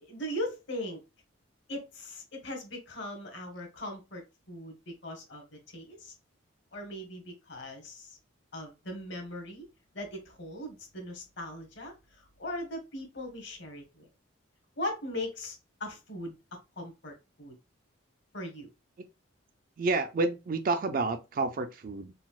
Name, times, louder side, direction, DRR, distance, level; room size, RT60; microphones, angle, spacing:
voice 1, 0.0-1.0 1.7-4.2 4.5-6.1 6.7-8.2 8.5-9.7 9.9-14.1 14.8-16.4 16.8-17.1 17.4-17.5 18.3-18.7, left 1 dB, 55° left, 1.0 m, -39 dB
voice 2, 19.8-22.1, right 3 dB, 40° right, 0.3 m, -29 dB
3.9 x 2.1 x 2.3 m
head